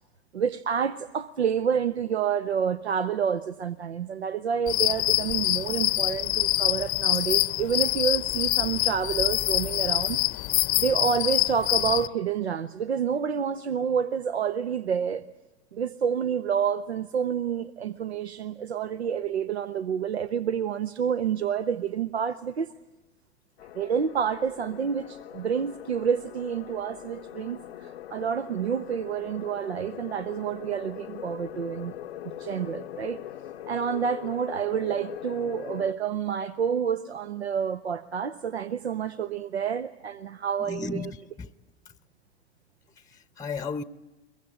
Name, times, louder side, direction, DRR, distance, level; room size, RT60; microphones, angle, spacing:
voice 1, 0.3-10.5 10.8-15.2 15.7-22.7 23.7-31.9 32.2-33.2 33.7-41.1, right 7 dB, 85° right, 0.8 m, -28 dB
sound 1, 4.7-12.1, left 20 dB, 45° left, 0.7 m, -25 dB
sound 2, 23.6-35.9, left 12 dB, 75° left, 0.8 m, -41 dB
voice 2, 40.6-41.5 43.1-43.8, left 5 dB, 10° left, 0.8 m, -35 dB
22.5 x 22.5 x 8.7 m
figure-of-eight pair, 80°, 32 cm